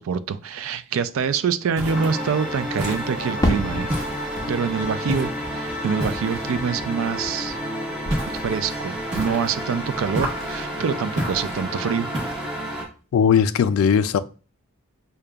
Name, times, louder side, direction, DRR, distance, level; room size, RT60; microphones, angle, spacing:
voice 1, 0.0-3.9 4.5-7.6 8.4-12.1, right 6 dB, 75° right, 0.3 m, -25 dB
sound 1, 1.8-2.2 2.8-3.3 3.9-4.5 5.1-5.5 6.0-6.6 8.1-8.6 9.1-9.6 10.1-10.6 11.2-11.6 12.1-12.6, right 1 dB, 35° right, 1.2 m, -30 dB
sound 2, 1.9-12.8, equal, 5° right, 1.4 m, -30 dB
Fireworks, 3.4-7.8 8.0-8.8, left 1 dB, 15° left, 0.5 m, -30 dB
voice 2, 13.1-14.2, left 7 dB, 75° left, 0.3 m, -18 dB
6.5 x 2.2 x 2.3 m
head